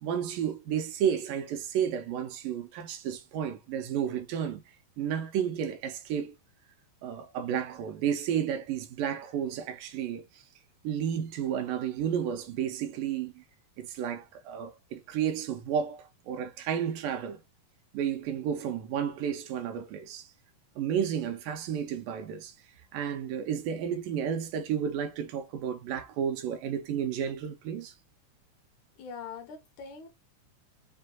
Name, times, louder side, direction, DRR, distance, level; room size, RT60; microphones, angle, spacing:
voice 1, 0.0-4.6 5.0-6.4 7.0-10.2 10.8-13.4 13.8-17.4 17.9-20.3 20.8-22.5 22.9-27.9, right 8 dB, 80° right, 2.4 m, -32 dB
voice 2, 29.0-30.1, left 6 dB, 70° left, 2.3 m, -42 dB
6.4 x 2.5 x 2.3 m
omnidirectional pair, 3.8 m